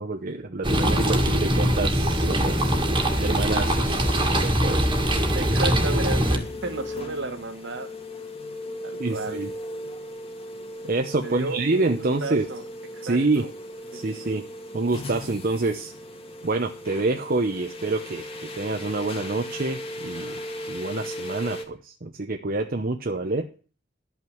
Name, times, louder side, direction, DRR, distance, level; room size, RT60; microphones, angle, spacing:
voice 1, 0.0-2.8 3.2-4.1 4.4-4.9 9.0-9.5 10.8-12.4 13.0-13.4 13.9-14.4 14.7-15.9 16.4-20.4 20.7-23.5, right 2 dB, 45° right, 5 dB, 0.8 m, -27 dB
sound 1, 0.6-6.4, equal, 25° right, 1.8 m, -22 dB
sound 2, 2.3-21.6, left 1 dB, 30° left, 1.8 m, -38 dB
voice 2, 5.3-7.9 8.8-9.4 11.2-12.6 12.9-13.5 14.2-14.4 23.1-23.2, right 2 dB, 60° right, 7 dB, 1.8 m, -33 dB
12.5 x 5.9 x 7.8 m, 0.39 s
head